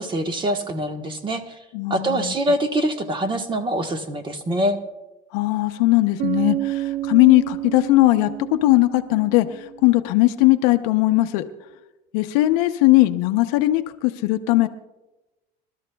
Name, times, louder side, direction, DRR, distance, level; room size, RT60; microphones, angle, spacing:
voice 1, 0.0-1.6 1.9-4.8, right 1 dB, 30° right, 6 dB, 1.3 m, -24 dB
voice 2, 1.7-2.3 5.3-11.4 12.1-14.7, left 18 dB, 85° left, 7 dB, 0.7 m, -19 dB
Bass guitar, 6.2-10.0, right 15 dB, 65° right, 0.4 m, -29 dB
26.0 x 12.5 x 2.3 m, 1.0 s
cardioid pair, 120°, 18 cm